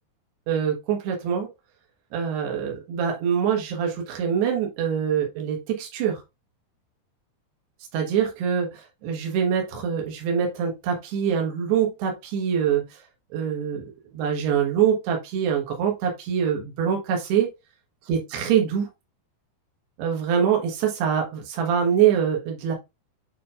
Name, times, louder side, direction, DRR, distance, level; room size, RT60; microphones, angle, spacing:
voice 1, 0.5-1.5 2.1-6.2 7.9-13.0 13.3-17.5 18.0-18.9 20.0-22.8, right 8 dB, 85° right, 3.4 m, -24 dB
9.2 x 4.4 x 2.4 m
omnidirectional pair, 4.6 m